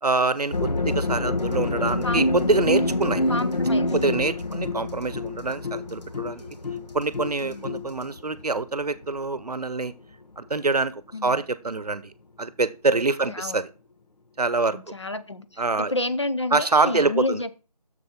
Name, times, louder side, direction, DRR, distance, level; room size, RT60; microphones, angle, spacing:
voice 1, 0.0-3.2 3.9-6.4 6.9-9.9 10.4-12.1 12.4-13.7 14.4-14.8 15.6-15.9 16.5-17.4, right 3 dB, 70° right, 0.8 m, -25 dB
sound 1, 0.5-9.4, left 2 dB, 90° left, 1.1 m, -27 dB
voice 2, 2.8-3.9 4.4-4.8 7.4-7.8 11.1-11.4 13.3-13.6 14.7-17.5, left 2 dB, 45° left, 0.6 m, -30 dB
sound 2, 2.8-4.1 4.5-5.6 6.3-7.7, right 2 dB, 5° left, 3.0 m, -58 dB
6.8 x 6.7 x 4.3 m
figure-of-eight pair, 175°, 21 cm